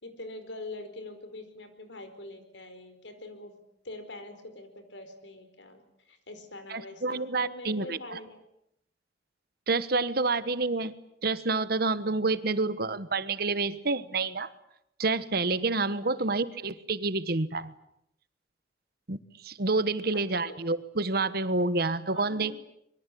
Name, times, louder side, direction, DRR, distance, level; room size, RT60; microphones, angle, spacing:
voice 1, 0.0-3.6 3.8-8.4 16.1-16.3 20.1-20.6 22.1-22.5, left 2 dB, 90° left, 9 dB, 4.7 m, -44 dB
voice 2, 6.7-8.2 9.7-10.9 11.2-14.5 15.0-17.7 19.1-22.5, right 3 dB, 55° right, 14 dB, 1.3 m, -28 dB
25.0 x 23.0 x 8.5 m, 0.78 s
head